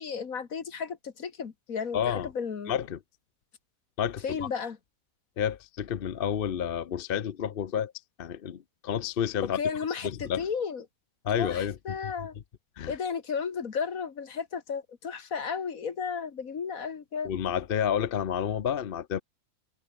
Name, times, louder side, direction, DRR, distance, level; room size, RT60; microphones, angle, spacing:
voice 1, 0.0-2.8 4.2-4.8 9.5-10.8 11.4-12.3 12.9-17.3, left 6 dB, 70° left, 2.1 m, -33 dB
voice 2, 1.9-2.3 2.7-3.0 4.0-4.5 5.4-7.9 8.2-9.6 10.0-10.5 11.2-12.1 12.8-12.9 17.2-19.2, left 8 dB, 50° left, 0.8 m, -30 dB
omnidirectional pair, 1.5 m